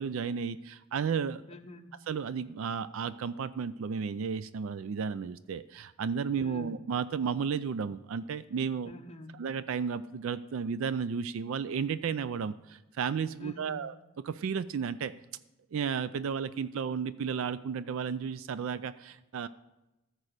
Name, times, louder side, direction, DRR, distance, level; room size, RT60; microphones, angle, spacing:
voice 1, 0.0-1.4 2.1-8.9 9.4-13.9 14.2-15.1 15.7-19.5, right 6 dB, 60° right, 15 dB, 0.3 m, -33 dB
voice 2, 1.5-2.0 6.4-6.8 8.8-9.3 13.4-13.8, left 2 dB, 25° left, 5 dB, 0.7 m, -47 dB
14.0 x 4.8 x 6.6 m, 0.96 s
head